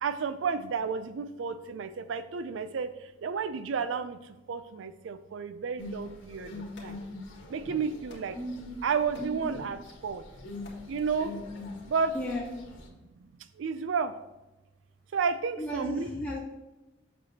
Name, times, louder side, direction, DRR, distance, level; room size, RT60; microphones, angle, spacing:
voice 1, 0.0-7.0 7.5-8.4 8.8-10.2 10.9-11.4 11.9-12.1 13.2-13.3 13.6-14.1 15.1-16.1, right 5 dB, 75° right, 12 dB, 0.4 m, -32 dB
sound 1, 5.8-12.9, left 1 dB, 90° left, 1.7 m, -42 dB
sound 2, 6.0-7.5 8.1-8.5 8.9-9.4 10.2-10.9 11.2-11.4, left 2 dB, 60° left, 2.0 m, -54 dB
voice 2, 12.1-12.5 15.6-16.4, left 1 dB, 10° left, -7 dB, 2.4 m, -34 dB
7.7 x 6.8 x 2.9 m, 1.0 s
head